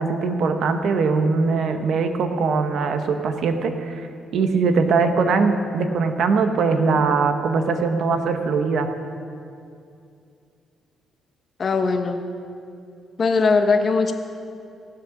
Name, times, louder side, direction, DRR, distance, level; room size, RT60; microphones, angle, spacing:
voice 1, 0.0-4.1 4.3-8.9, right 4 dB, 70° right, 7 dB, 1.1 m, -21 dB
voice 2, 11.6-12.3 13.2-14.1, left 4 dB, 45° left, 6 dB, 1.1 m, -20 dB
17.5 x 7.7 x 6.0 m, 2.5 s
cardioid pair, 90°, 0 cm